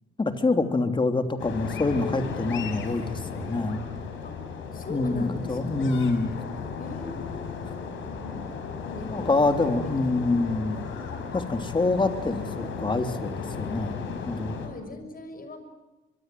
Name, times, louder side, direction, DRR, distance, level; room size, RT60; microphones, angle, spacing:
voice 1, 0.2-3.8 4.9-6.3 9.1-10.8 11.3-14.6, left 3 dB, 25° left, 7 dB, 3.2 m, -26 dB
sound 1, 1.4-14.7, left 5 dB, 75° left, 5.5 m, -35 dB
voice 2, 4.7-6.1 6.8-7.8 8.1-9.3 9.6-10.4 14.2-14.3 14.6-15.6, left 2 dB, 45° left, 8 dB, 6.4 m, -40 dB
24.5 x 24.0 x 9.3 m, 1.1 s
cardioid pair, 90°, 20 cm